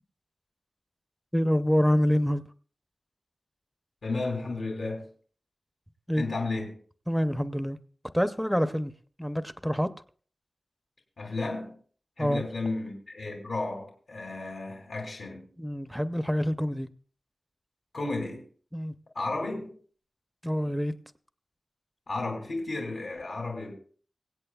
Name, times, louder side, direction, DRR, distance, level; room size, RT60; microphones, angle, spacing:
voice 1, 1.3-2.4 6.1-6.2 7.1-7.8 8.1-8.9 9.2-9.9 12.2-12.4 15.6-16.9 18.7-18.9 20.4-20.9, equal, ahead, 0.6 m, -26 dB
voice 2, 4.0-5.1 6.1-6.8 11.2-11.7 12.2-15.5 17.9-18.4 19.1-19.8 22.1-23.7, left 3 dB, 80° left, 2.5 m, -33 dB
24.0 x 8.3 x 2.3 m
wide cardioid pair, 95°, 0 cm